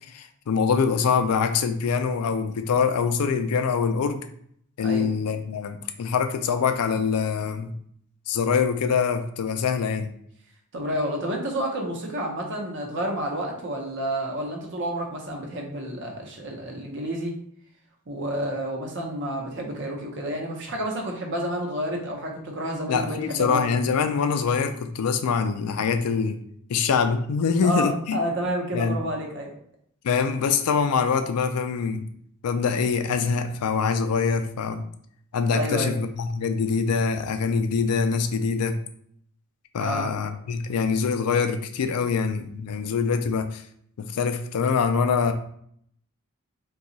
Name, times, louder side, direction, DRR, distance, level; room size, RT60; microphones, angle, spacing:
voice 1, 0.1-4.3 4.8-7.7 8.3-10.1 22.9-26.4 26.7-28.2 28.7-29.0 30.0-32.0 32.4-34.8 35.3-38.8 39.7-43.6 44.0-45.3, left 5 dB, 90° left, 8 dB, 0.4 m, -24 dB
voice 2, 10.7-17.4 18.1-23.8 27.6-29.5 35.5-35.9 39.8-40.1, right 1 dB, 55° right, 1 dB, 0.7 m, -30 dB
2.8 x 2.3 x 3.9 m, 0.66 s
head